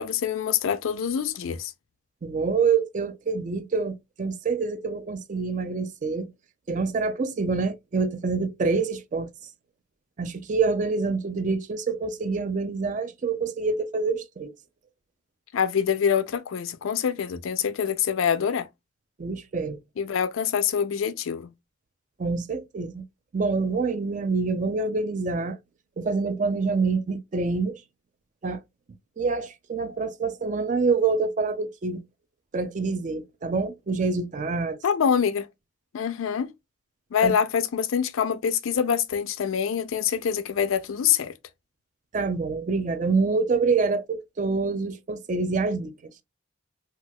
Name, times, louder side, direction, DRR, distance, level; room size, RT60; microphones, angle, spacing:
voice 1, 0.0-1.7 15.5-18.7 20.0-21.5 34.8-35.5 35.9-36.5 37.1-41.3, left 7 dB, 85° left, 0.4 m, -25 dB
voice 2, 2.2-6.3 6.7-9.3 10.2-14.5 19.2-19.8 22.2-23.0 23.3-25.6 26.0-27.8 28.4-28.6 29.2-32.0 32.5-34.8 37.2-37.3 42.1-45.9, right 4 dB, 40° right, 0.3 m, -26 dB
4.2 x 2.3 x 2.2 m
head